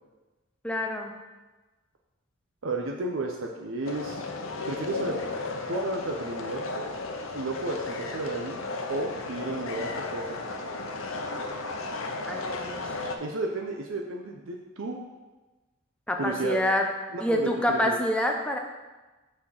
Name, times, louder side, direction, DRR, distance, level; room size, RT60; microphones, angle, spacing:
voice 1, 0.6-1.1 12.3-12.8 16.1-16.8 17.2-18.6, left 1 dB, 5° left, 2 dB, 0.7 m, -27 dB
voice 2, 2.6-4.2 4.7-5.2 5.7-6.9 7.3-8.6 8.9-10.5 13.2-15.0 16.2-16.6 17.1-18.0, right 2 dB, 75° right, 1 dB, 0.6 m, -32 dB
sound 1, 3.8-13.2, left 3 dB, 80° left, 0.8 m, -34 dB
5.9 x 4.3 x 6.3 m, 1.2 s
head